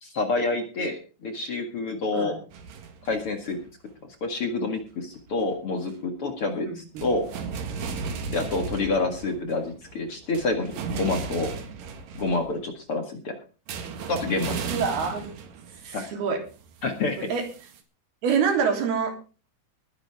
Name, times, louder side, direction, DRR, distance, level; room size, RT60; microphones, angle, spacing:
voice 1, 0.0-2.3 3.0-3.6 4.2-7.3 8.3-11.5 12.2-13.4 14.1-14.6 15.9-16.1 16.8-17.2, left 3 dB, 45° left, 6 dB, 2.2 m, -28 dB
sound 1, 2.5-3.9 5.2-5.5 5.9-6.0 7.0-12.7 13.7-16.1 16.5-17.8, right 5 dB, 65° right, 3.3 m, -36 dB
voice 2, 6.7-7.1 14.7-15.3 15.8-16.4 17.2-17.5 18.2-19.2, right 6 dB, 85° right, 5 dB, 5.2 m, -26 dB
21.0 x 10.5 x 3.5 m, 0.35 s
omnidirectional pair, 4.4 m